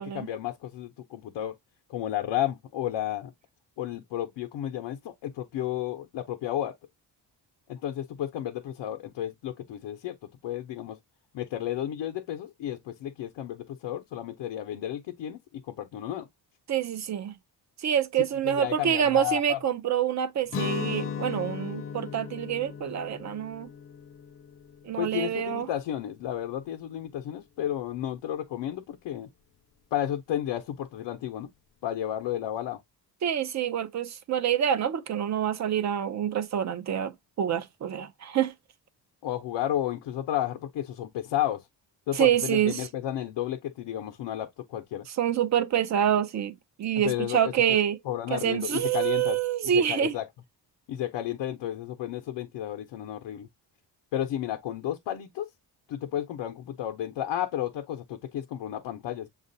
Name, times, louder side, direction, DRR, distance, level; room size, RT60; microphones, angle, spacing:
voice 1, 0.0-1.6 1.9-3.3 3.8-6.8 7.7-10.2 10.4-11.0 11.3-16.3 18.5-19.6 25.0-29.3 29.9-31.5 31.8-32.8 39.2-41.6 42.1-45.1 47.0-47.8 48.1-49.4 49.7-50.3 50.9-53.5 54.1-55.5 55.9-59.3, left 12 dB, 90° left, 0.7 m, -32 dB
voice 2, 16.7-17.3 17.8-23.7 24.8-25.7 33.2-38.5 42.1-42.9 45.1-48.0 48.3-50.2, right 9 dB, 40° right, 0.5 m, -27 dB
Guitar, 20.5-26.3, left 7 dB, 35° left, 0.4 m, -37 dB
7.3 x 2.4 x 2.6 m
cardioid pair, 135°, 42 cm